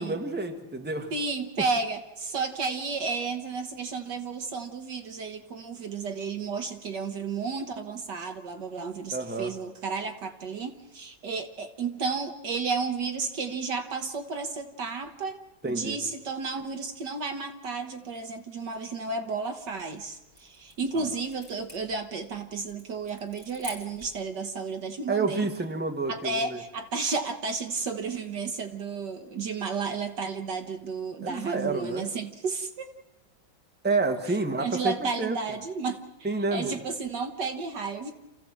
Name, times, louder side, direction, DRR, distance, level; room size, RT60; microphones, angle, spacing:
voice 1, 0.0-1.1 9.1-9.5 15.6-16.0 20.9-21.1 25.1-26.6 31.2-32.1 33.8-35.4 36.2-36.7, right 3 dB, 5° right, 5 dB, 1.5 m, -29 dB
voice 2, 1.1-25.5 26.1-32.9 34.6-38.1, right 4 dB, 65° right, 8 dB, 1.8 m, -32 dB
sound 1, 19.7-24.2, left 2 dB, 10° left, 6.8 m, -48 dB
27.5 x 15.5 x 7.6 m, 1.1 s
omnidirectional pair, 2.1 m